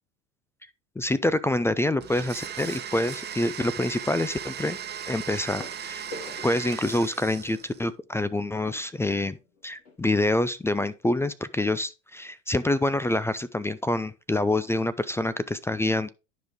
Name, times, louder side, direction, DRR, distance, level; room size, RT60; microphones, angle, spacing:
voice 1, 1.0-4.8 5.1-6.0 6.4-9.4 9.6-16.1, left 1 dB, 5° left, 0.3 m, -26 dB
Domestic sounds home sounds, 2.0-7.8, right 8 dB, 25° right, 1.0 m, -37 dB
sound 1, 5.6-10.0 10.8-10.9 11.1-11.3 11.8-11.9, left 2 dB, 75° left, 4.2 m, -47 dB
10.5 x 5.2 x 3.6 m
hypercardioid pair, 90°, 38 cm